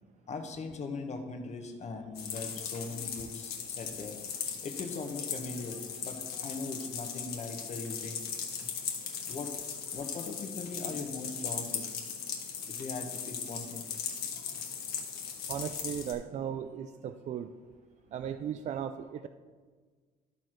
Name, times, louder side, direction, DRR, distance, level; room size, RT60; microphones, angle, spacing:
voice 1, 0.3-8.2 9.3-9.5 9.9-11.9 12.7-13.9, left 3 dB, 40° left, 5 dB, 1.2 m, -40 dB
sound 1, 2.2-16.1, left 7 dB, 70° left, 1.5 m, -38 dB
voice 2, 15.5-17.5 18.1-19.3, right 9 dB, 45° right, 9 dB, 0.4 m, -36 dB
13.0 x 4.6 x 4.5 m, 1.5 s
cardioid pair, 110°, 17 cm